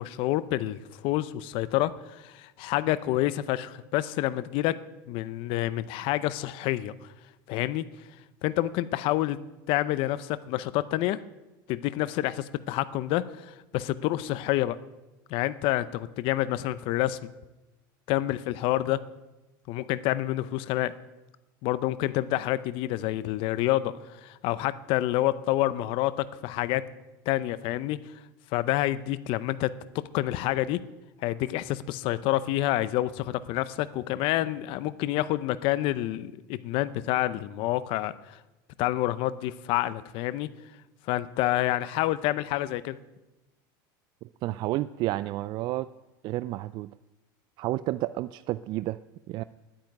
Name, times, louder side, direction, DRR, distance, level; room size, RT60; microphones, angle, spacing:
voice 1, 0.0-4.8 5.1-6.9 7.5-7.8 8.4-9.4 9.7-11.2 11.7-14.8 15.3-17.3 18.1-19.0 19.7-20.9 21.6-23.9 24.2-26.9 27.3-28.0 28.5-30.8 31.2-38.4 38.8-40.5 41.1-43.0, left 15 dB, 55° left, 15 dB, 0.7 m, -28 dB
voice 2, 44.2-45.9 46.2-46.9 47.6-49.4, right 16 dB, 45° right, 15 dB, 0.3 m, -31 dB
10.5 x 8.9 x 9.6 m, 1.0 s
supercardioid pair, 130°, 11 cm